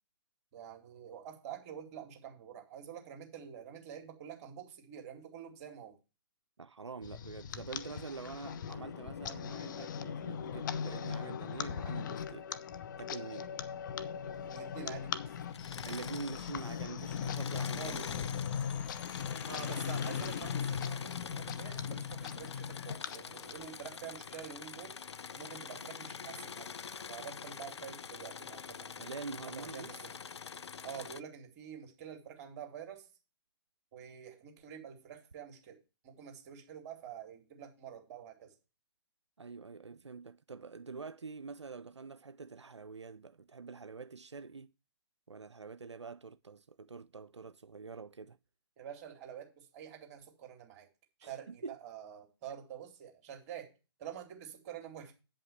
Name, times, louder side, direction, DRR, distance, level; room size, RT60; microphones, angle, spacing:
voice 1, 0.5-6.0 14.5-15.4 17.7-18.3 19.5-25.0 25.4-26.7 27.1-29.1 29.5-30.1 30.8-33.1 33.9-38.5 48.8-50.9 51.2-53.7 54.0-55.1, right 8 dB, 35° right, 2.6 m, -47 dB
voice 2, 6.6-12.6 13.0-13.5 15.9-17.8 19.4-19.6 29.0-29.9 39.4-44.7 45.3-48.4 51.2-51.8, right 4 dB, 90° right, 0.4 m, -46 dB
sound 1, 7.0-23.9, left 7 dB, 45° left, 0.7 m, -39 dB
Engine / Mechanisms, 15.4-16.8 17.1-31.2, left 6 dB, 75° left, 0.4 m, -45 dB
8.6 x 5.5 x 6.9 m
figure-of-eight pair, 125°, 14 cm